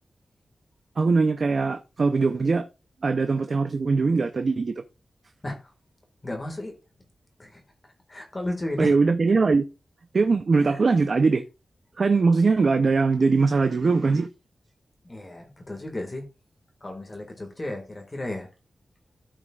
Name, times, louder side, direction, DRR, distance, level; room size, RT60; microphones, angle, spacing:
voice 1, 1.0-2.7 3.0-4.8 8.8-9.7 10.1-11.4 12.0-14.3, right 4 dB, 50° right, 0.5 m, -21 dB
voice 2, 6.2-6.8 7.4-7.6 8.1-8.9 10.6-10.8 15.0-16.2 16.8-18.5, left 1 dB, 25° left, 1.7 m, -34 dB
13.0 x 5.2 x 2.3 m
wide cardioid pair, 120°, 0 cm